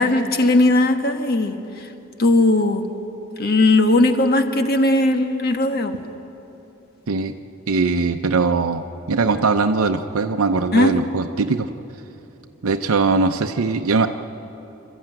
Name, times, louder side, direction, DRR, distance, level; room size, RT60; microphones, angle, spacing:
voice 1, 0.0-1.9 2.2-2.9 3.4-5.9 10.7-11.0, left 2 dB, 45° left, 6 dB, 1.3 m, -18 dB
voice 2, 7.7-11.7 12.6-14.1, right 4 dB, 90° right, 6 dB, 0.7 m, -20 dB
28.0 x 13.0 x 9.0 m, 3.0 s
head